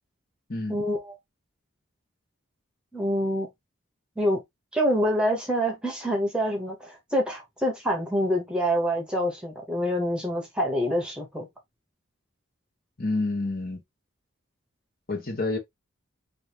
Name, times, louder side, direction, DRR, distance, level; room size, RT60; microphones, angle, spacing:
voice 1, 0.7-1.1 2.9-3.5 4.2-4.4 4.7-11.5, equal, 5° right, 1.0 m, -26 dB
voice 2, 13.0-13.8 15.1-15.6, left 2 dB, 45° left, 1.4 m, -28 dB
4.4 x 2.6 x 3.3 m
head